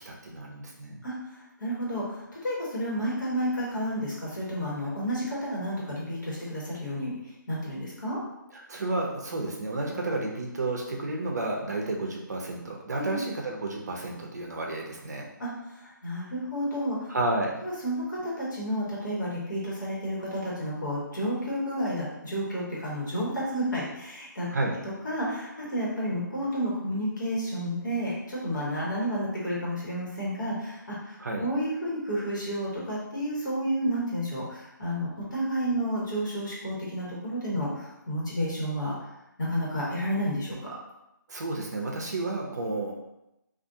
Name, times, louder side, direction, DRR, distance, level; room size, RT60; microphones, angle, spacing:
voice 1, 0.0-1.0 8.5-15.3 17.1-17.5 24.5-24.8 31.2-31.5 41.3-42.9, right 2 dB, 55° right, 0 dB, 0.6 m, -31 dB
voice 2, 1.6-7.1 7.5-8.2 12.9-13.2 15.4-15.5 15.8-17.0 17.6-24.5 25.0-38.9 39.4-40.6, equal, 65° left, -6 dB, 1.2 m, -31 dB
2.5 x 2.4 x 2.6 m, 0.88 s
figure-of-eight pair, 150°, 11 cm